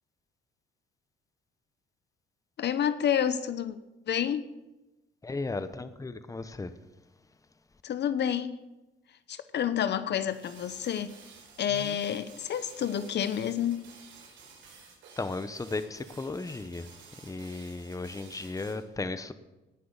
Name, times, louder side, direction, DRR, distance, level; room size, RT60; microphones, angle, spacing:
voice 1, 2.6-3.8 4.1-4.5 7.8-8.6 9.3-11.2 11.6-13.9, left 9 dB, 60° left, 0.8 m, -29 dB
voice 2, 5.2-6.7 11.7-12.0 15.2-16.9 17.2-19.3, left 3 dB, 15° left, 0.9 m, -35 dB
sound 1, 10.3-18.8, right 5 dB, 80° right, 4.3 m, -53 dB
18.0 x 6.1 x 7.2 m
cardioid pair, 90°, 20 cm